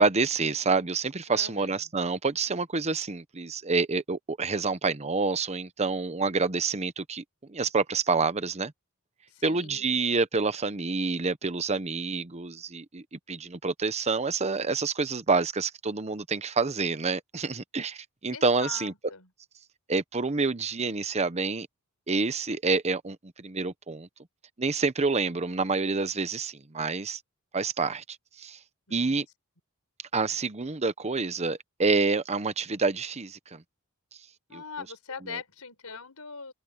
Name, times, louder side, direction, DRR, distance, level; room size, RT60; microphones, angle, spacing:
voice 1, 0.0-7.2 7.5-8.7 9.4-18.9 19.9-21.7 22.1-24.1 24.6-27.2 27.5-28.0 28.4-28.6 28.9-29.3 30.1-33.6 34.5-34.6, right 4 dB, 30° right, 0.9 m, -28 dB
voice 2, 1.3-1.8 9.3-10.0 18.3-19.3 28.9-29.2 34.5-36.5, left 5 dB, 85° left, 4.7 m, -42 dB
head